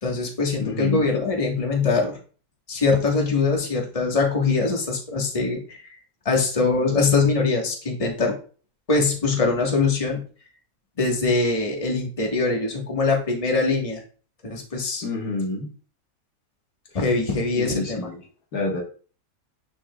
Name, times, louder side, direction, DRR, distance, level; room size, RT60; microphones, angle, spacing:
voice 1, 0.0-2.2 2.7-5.8 6.2-8.4 8.9-10.2 11.0-14.0 14.4-15.0 16.9-18.0, left 4 dB, 25° left, 0 dB, 1.4 m, -22 dB
voice 2, 0.6-1.1 15.0-15.7 17.6-18.3 18.5-18.8, left 3 dB, 70° left, 1 dB, 2.0 m, -28 dB
9.8 x 4.8 x 2.3 m, 0.39 s
omnidirectional pair, 1.6 m